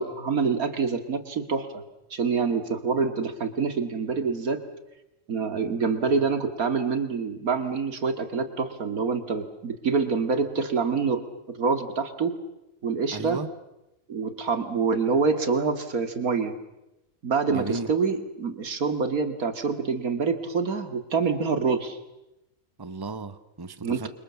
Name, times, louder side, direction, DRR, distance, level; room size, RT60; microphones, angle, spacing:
voice 1, 0.0-1.8 2.1-4.6 5.3-11.2 11.5-12.3 12.8-13.4 14.1-16.5 17.2-22.0 23.8-24.1, right 5 dB, 85° right, 9 dB, 2.6 m, -26 dB
voice 2, 13.1-13.5 17.5-17.9 22.8-24.1, right 3 dB, 15° right, 12 dB, 1.1 m, -34 dB
29.5 x 25.5 x 7.1 m, 0.92 s
omnidirectional pair, 1.5 m